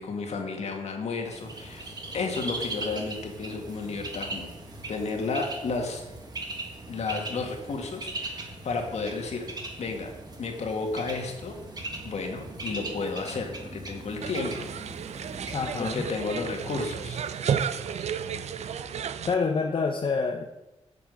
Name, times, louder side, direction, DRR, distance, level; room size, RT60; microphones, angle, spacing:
voice 1, 0.0-4.5 4.9-6.0 6.9-9.5 9.8-10.1 10.4-11.5 12.0-14.7 15.1-15.3 15.6-17.2, left 4 dB, 65° left, 3 dB, 1.9 m, -32 dB
Bird, 1.2-19.0, right 2 dB, 35° right, 1.6 m, -40 dB
sound 1, 14.2-19.3, right 7 dB, 65° right, 0.5 m, -32 dB
voice 2, 15.5-16.0 19.3-20.4, left 4 dB, 45° left, 3 dB, 0.8 m, -27 dB
8.3 x 6.0 x 7.7 m, 0.98 s
wide cardioid pair, 115°, 12 cm